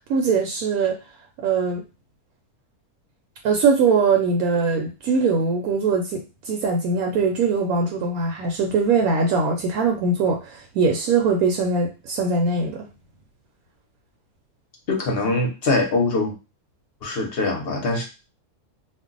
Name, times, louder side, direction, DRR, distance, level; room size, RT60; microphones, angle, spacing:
voice 1, 0.1-1.0 1.4-1.8 3.4-12.9, right 4 dB, 75° right, 2 dB, 1.0 m, -21 dB
voice 2, 14.9-16.3 17.0-18.0, left 2 dB, 50° left, 0 dB, 0.8 m, -23 dB
2.5 x 2.1 x 3.7 m, 0.30 s
omnidirectional pair, 1.6 m